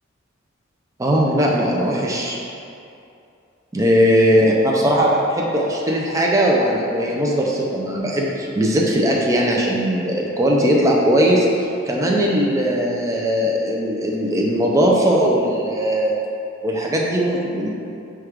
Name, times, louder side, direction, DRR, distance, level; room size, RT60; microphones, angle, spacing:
voice 1, 1.0-2.4 3.7-16.1 16.6-17.7, equal, 15° right, -3 dB, 0.4 m, -19 dB
4.9 x 2.3 x 4.5 m, 2.6 s
head